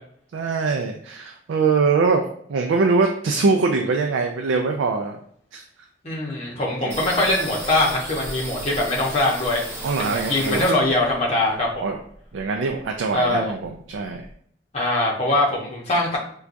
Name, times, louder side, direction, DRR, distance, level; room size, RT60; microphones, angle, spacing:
voice 1, 0.3-5.2 5.5-5.6 6.8-7.0 9.8-10.7 11.8-12.0 12.3-14.3, right 4 dB, 80° right, 3 dB, 0.3 m, -23 dB
voice 2, 6.0-9.6 10.0-11.9 13.1-13.5 14.7-16.2, left 1 dB, 35° left, -4 dB, 0.9 m, -22 dB
sound 1, 6.9-11.2 11.6-13.0 13.2-13.3 13.6-14.3, right 1 dB, 15° right, 0.7 m, -35 dB
4.4 x 2.3 x 2.5 m, 0.64 s
head